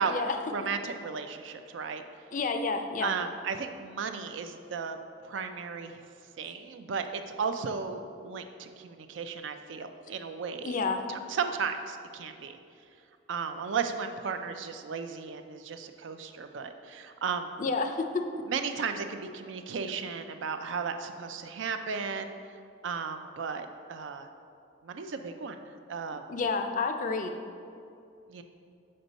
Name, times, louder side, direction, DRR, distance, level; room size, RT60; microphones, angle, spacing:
voice 1, 0.5-2.0 3.0-5.0 5.2-6.0 6.4-10.8 11.1-12.6 13.3-17.5 18.5-22.3 22.8-24.3 24.8-25.6 25.9-26.2 28.3-28.4, right 5 dB, 70° right, 7 dB, 0.4 m, -35 dB
voice 2, 2.3-3.1 10.6-11.0 17.6-18.4 26.3-27.3, left 4 dB, 40° left, 6 dB, 0.4 m, -30 dB
6.5 x 4.4 x 4.0 m, 2.5 s
head